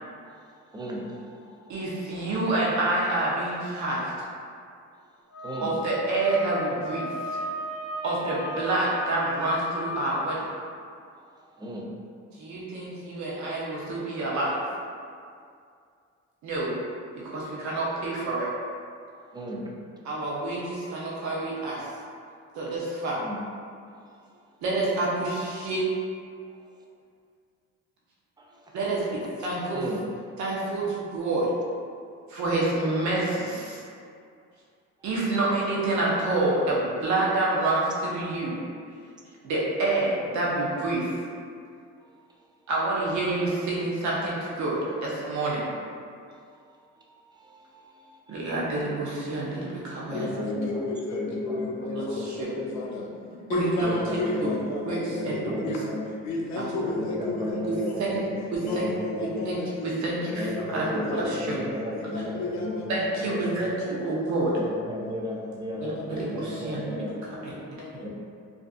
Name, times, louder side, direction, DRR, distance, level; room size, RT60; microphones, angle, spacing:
voice 1, 0.7-1.4 1.6-1.8 5.4-5.8 11.2-11.9 19.2-19.7 22.7-22.8 23.2-23.4 23.9-24.0 24.3-24.4 28.4-28.8 29.7-30.0 35.0-35.1 42.0-42.1 46.5-46.6 46.9-47.0 47.3-48.5 50.1-52.9 53.8-56.0 57.0-59.5 60.3-63.6 64.6-67.1 68.0-68.1, left 1 dB, 15° right, -2 dB, 0.4 m, -35 dB
voice 2, 1.7-4.0 5.6-7.4 8.0-10.5 12.4-14.6 16.4-16.8 17.2-18.5 20.0-21.8 22.5-23.2 24.6-25.8 28.7-29.9 30.4-31.5 32.3-33.8 35.0-38.6 39.4-41.1 42.7-45.6 48.3-50.3 52.4-52.5 53.5-54.0 54.4-54.5 54.9-55.3 56.8-56.9 58.1-58.2 58.5-58.8 59.4-61.6 62.9-64.5 65.8-66.8 67.4-67.5, right 2 dB, 70° right, -5 dB, 0.6 m, -28 dB
Wind instrument woodwind instrument, 5.3-10.1, left 1 dB, 35° left, 0.8 m, -35 dB
voice 3, 50.1-53.1 53.5-55.9 56.2-58.3 58.6-64.7 65.7-68.1, left 2 dB, 65° left, -2 dB, 0.5 m, -34 dB
2.4 x 2.4 x 2.3 m, 2.3 s
cardioid pair, 90°, 30 cm